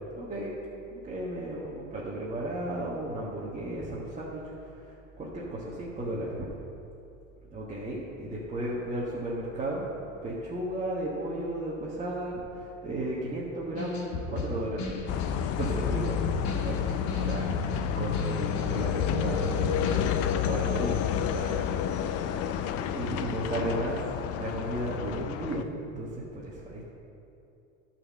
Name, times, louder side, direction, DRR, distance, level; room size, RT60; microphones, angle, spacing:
voice 1, 0.2-0.5 0.9-6.4 7.5-9.9 10.2-20.2 20.4-21.7 22.0-24.0 24.4-26.9, right 1 dB, 20° right, -6 dB, 1.3 m, -35 dB
sound 1, 13.8-20.3, left 3 dB, 60° left, 1.9 m, -36 dB
sound 2, 15.1-25.6, left 8 dB, 40° left, 0.5 m, -30 dB
9.8 x 4.4 x 7.3 m, 2.8 s
supercardioid pair, 115°, 38 cm